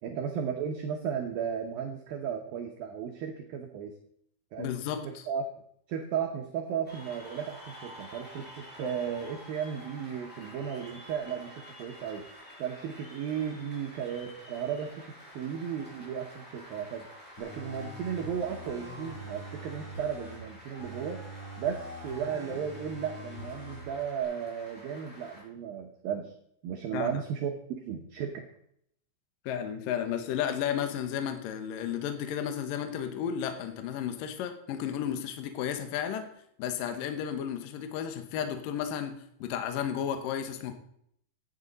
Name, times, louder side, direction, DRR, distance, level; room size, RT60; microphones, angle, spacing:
voice 1, 0.0-4.0 4.5-4.7 5.0-5.4 5.9-12.3 12.6-17.1 17.4-21.2 21.6-26.3 26.6-27.5 27.9-28.5, right 8 dB, 80° right, 3 dB, 2.0 m, -35 dB
voice 2, 4.6-5.2 26.9-27.1 29.5-36.3 36.6-40.7, left 9 dB, 80° left, 6 dB, 1.9 m, -33 dB
Cheering / Applause, 6.8-25.4, equal, ahead, 4.9 m, -49 dB
sound 1, 17.4-20.4 20.8-23.8 24.2-24.3, left 1 dB, 30° left, 3.3 m, -44 dB
16.0 x 9.5 x 4.0 m, 0.71 s
omnidirectional pair, 5.7 m